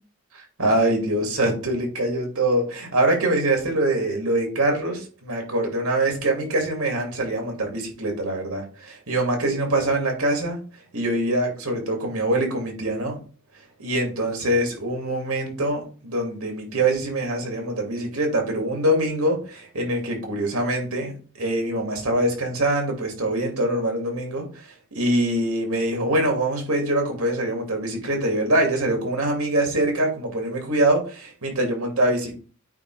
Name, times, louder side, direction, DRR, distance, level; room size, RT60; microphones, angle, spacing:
voice 1, 0.3-10.6 10.9-13.2 13.8-32.4, right 1 dB, 85° right, 2 dB, 2.4 m, -24 dB
8.9 x 3.0 x 4.8 m, 0.37 s
head